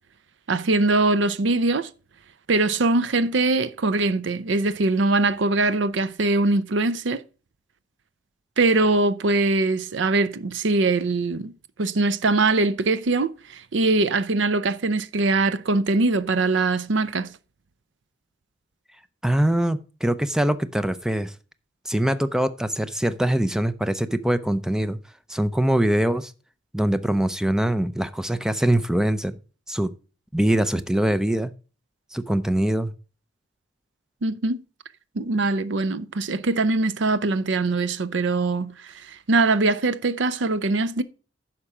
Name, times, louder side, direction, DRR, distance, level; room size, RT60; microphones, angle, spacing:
voice 1, 0.5-1.9 2.5-7.2 8.6-11.5 11.8-17.3 34.2-34.6 35.2-41.0, right 3 dB, 70° right, 0.6 m, -22 dB
voice 2, 19.2-21.3 21.9-25.0 25.3-26.3 26.7-29.4 29.7-29.9 30.3-31.5 32.1-32.9, right 1 dB, 5° right, 0.5 m, -23 dB
9.9 x 5.9 x 4.9 m
head